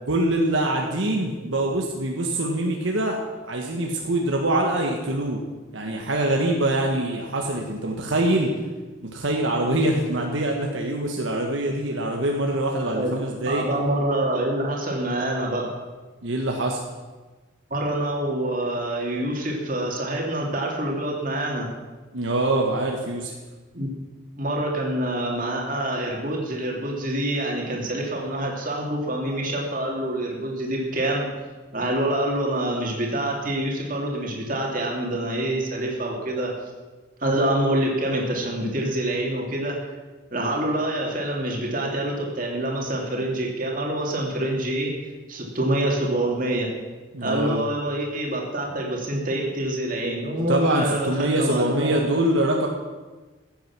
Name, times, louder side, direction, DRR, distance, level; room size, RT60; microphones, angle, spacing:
voice 1, 0.1-3.2 3.4-5.4 5.7-8.5 9.0-13.6 16.2-16.8 22.1-23.3 47.1-47.6 50.5-52.7, right 1 dB, 75° right, 1 dB, 1.4 m, -24 dB
voice 2, 12.9-15.7 17.7-21.7 23.7-23.9 24.4-31.3 31.7-36.5 37.2-39.8 40.3-44.9 45.3-46.7 47.2-52.0, right 1 dB, 40° right, -1 dB, 2.8 m, -26 dB
15.5 x 8.9 x 6.0 m, 1.3 s
head